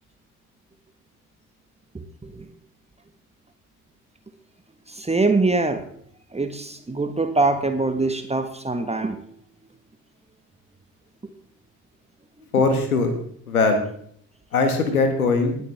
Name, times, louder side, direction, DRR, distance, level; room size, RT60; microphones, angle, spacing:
voice 1, 1.9-2.5 4.9-5.9 6.3-9.2, right 3 dB, 15° right, 7 dB, 1.6 m, -23 dB
voice 2, 12.5-13.1 13.5-13.8 14.5-15.6, left 3 dB, 85° left, 6 dB, 1.7 m, -20 dB
20.5 x 8.8 x 3.6 m, 0.63 s
figure-of-eight pair, 50°, 42 cm